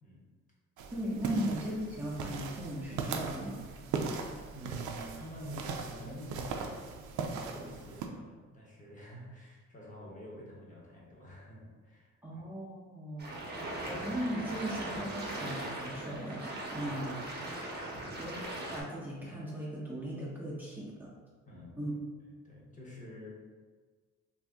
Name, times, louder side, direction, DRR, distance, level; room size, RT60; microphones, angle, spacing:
sound 1, 0.8-8.1, right 5 dB, 85° right, 0.5 m, -39 dB
voice 1, 0.9-3.6 12.2-17.2 17.5-17.7 18.2-18.4 18.7-21.1 21.8-21.9, equal, 5° right, -7 dB, 0.7 m, -38 dB
voice 2, 4.5-6.9 7.2-12.4 13.2-13.3 17.3-18.3 21.5-22.0 22.4-23.3, equal, 25° left, -5 dB, 0.9 m, -48 dB
sound 2, 13.2-18.8, right 1 dB, 35° right, 0.9 m, -39 dB
2.6 x 2.6 x 3.4 m, 1.4 s
cardioid pair, 90°, 30 cm